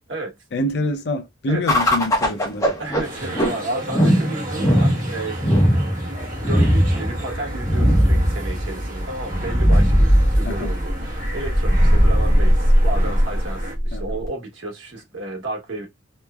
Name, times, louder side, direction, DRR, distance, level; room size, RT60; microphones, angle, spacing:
voice 1, 0.5-2.7 10.4-10.7 13.9-14.2, left 1 dB, 60° left, 0.5 m, -26 dB
voice 2, 1.5-1.8 2.8-5.7 6.0-15.9, right 2 dB, 75° right, 1.1 m, -32 dB
sound 1, 1.7-14.3, equal, 15° left, 0.7 m, -19 dB
sound 2, 3.0-13.7, right 1 dB, 45° right, 1.0 m, -35 dB
3.0 x 2.1 x 2.2 m
head